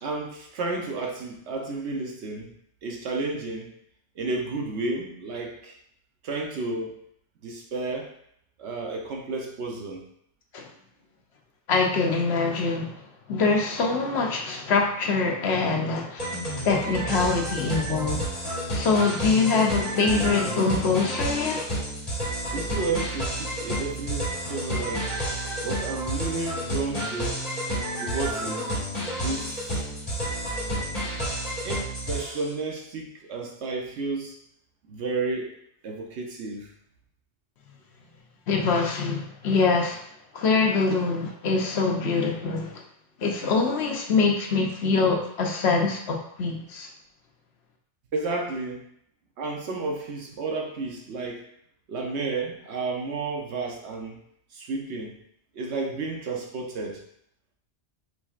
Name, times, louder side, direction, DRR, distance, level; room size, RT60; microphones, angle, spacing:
voice 1, 0.0-2.5 2.8-3.7 4.2-5.8 6.2-7.0 7.4-8.1 8.6-10.0 22.5-25.2 25.6-27.4 28.0-28.7 29.2-29.8 31.6-34.4 34.9-35.6 35.8-36.7 48.1-48.9 49.4-51.4 51.9-54.2 54.5-55.2 55.5-57.0, right 3 dB, 75° right, 1 dB, 1.1 m, -32 dB
voice 2, 11.7-13.0 13.3-16.3 16.6-18.2 18.7-21.7 38.5-40.0 40.3-42.8 43.2-46.9, left 4 dB, 70° left, 1 dB, 1.0 m, -24 dB
sound 1, 16.2-32.5, right 1 dB, 35° left, 1.6 m, -30 dB
5.0 x 3.5 x 2.4 m, 0.72 s
omnidirectional pair, 1.1 m